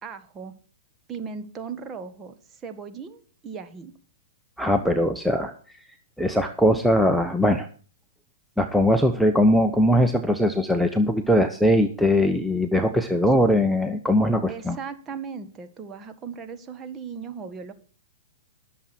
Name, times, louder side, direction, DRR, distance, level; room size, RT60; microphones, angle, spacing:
voice 1, 0.0-0.5 1.1-3.9 14.5-17.7, right 6 dB, 25° right, 8 dB, 1.8 m, -37 dB
voice 2, 4.6-5.5 6.2-7.7 8.6-14.8, equal, ahead, 5 dB, 1.0 m, -20 dB
19.5 x 7.4 x 4.5 m, 0.40 s
hypercardioid pair, 125°, 0 cm